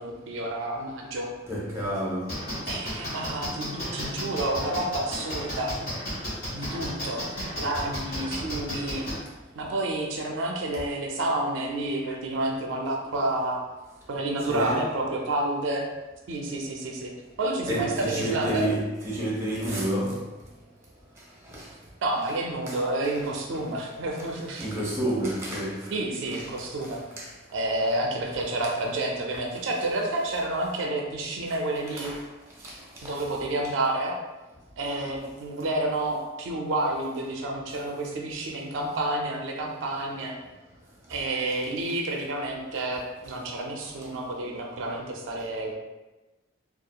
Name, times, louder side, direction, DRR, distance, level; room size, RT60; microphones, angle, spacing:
voice 1, 0.0-1.3 2.7-5.9 6.4-7.3 7.6-9.0 9.6-13.6 14.1-15.9 16.3-17.1 17.4-18.7 22.0-24.7 25.9-27.0 27.5-32.1 33.0-34.2 34.8-40.3 41.1-45.7, right 2 dB, 80° right, 0.4 m, -29 dB
voice 2, 1.5-2.4 14.5-14.9 17.7-20.2 21.4-21.7 22.7-22.8 24.6-25.9 26.3-26.5 27.2-27.3 32.0-32.2 32.6-32.8 33.0-33.2, right 1 dB, 15° right, 0.6 m, -29 dB
sound 1, 2.3-9.1, equal, 50° left, 1.3 m, -33 dB
2.7 x 2.3 x 2.3 m
head